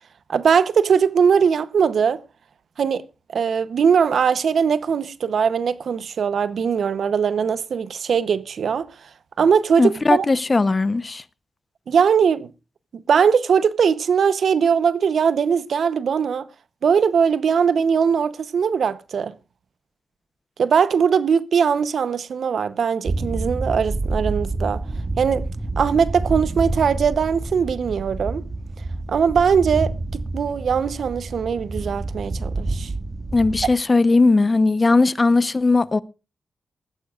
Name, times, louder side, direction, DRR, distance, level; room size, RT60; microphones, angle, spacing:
voice 1, 0.3-2.2 2.8-3.0 3.3-8.9 9.4-10.3 11.9-12.5 12.9-16.4 16.8-19.3 20.6-24.8 25.2-25.4 25.8-28.4 29.1-32.9, right 6 dB, 75° right, 0.8 m, -20 dB
voice 2, 9.8-11.2 33.3-36.0, left 3 dB, 35° left, 0.8 m, -18 dB
sound 1, 23.1-33.7, right 2 dB, 40° right, 1.9 m, -28 dB
20.0 x 14.5 x 2.4 m
cardioid pair, 75°, 0 cm